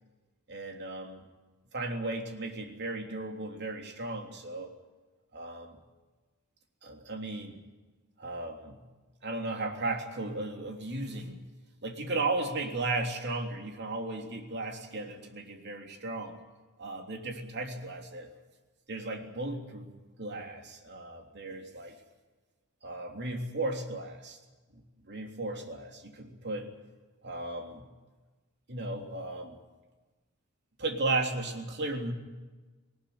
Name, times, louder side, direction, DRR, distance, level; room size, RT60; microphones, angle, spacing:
voice 1, 0.5-1.2 1.7-4.7 5.3-5.8 6.8-7.6 8.2-8.8 9.2-11.4 11.8-16.3 16.8-18.3 18.9-19.9 20.2-22.0 22.8-24.4 24.7-26.7 27.2-27.9 28.7-29.6 30.8-32.1, right 2 dB, 50° right, 3 dB, 3.3 m, -35 dB
20.0 x 19.0 x 9.4 m, 1.3 s
head